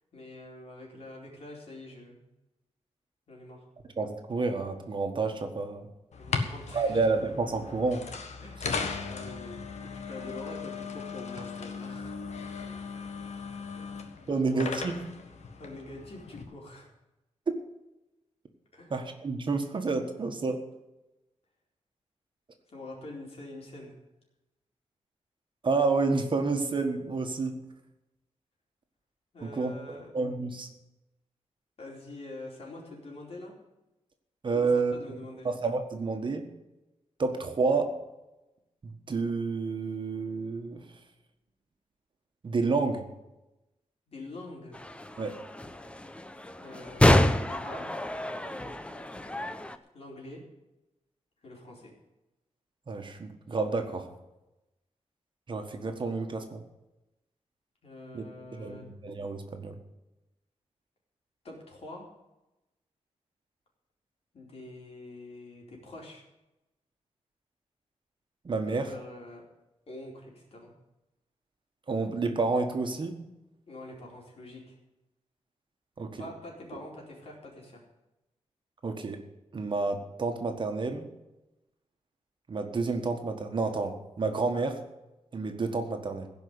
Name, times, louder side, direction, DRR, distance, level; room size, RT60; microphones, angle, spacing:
voice 1, 0.1-2.2 3.3-3.7 6.2-7.0 8.4-9.7 9.9-12.2 13.7-14.7 15.6-16.9 18.7-18.9 22.7-24.0 29.3-30.1 31.8-33.5 34.5-35.5 44.1-44.8 46.6-48.0 49.9-50.4 51.4-51.9 57.8-58.8 61.4-62.1 64.3-66.2 68.7-69.4 69.9-70.7 73.7-74.8 76.2-77.8, left 2 dB, 60° left, -2 dB, 4.3 m, -45 dB
voice 2, 4.0-5.9 6.7-8.0 14.3-15.0 17.5-17.6 18.9-20.6 25.6-27.6 29.4-30.7 34.4-35.2 35.4-36.5 37.2-38.0 38.8-40.8 42.4-43.0 45.2-45.3 52.9-54.1 55.5-56.6 58.1-58.2 58.5-59.8 68.4-68.9 71.9-73.1 76.0-76.2 78.8-79.2 79.5-81.1 82.5-84.8 85.3-86.3, right 3 dB, 45° right, 5 dB, 1.5 m, -29 dB
sound 1, 6.1-16.4, left 5 dB, 75° left, 1.5 m, -37 dB
sound 2, 44.7-49.8, left 1 dB, 10° left, 0.7 m, -28 dB
16.5 x 5.5 x 9.6 m, 0.97 s
wide cardioid pair, 145°, 12 cm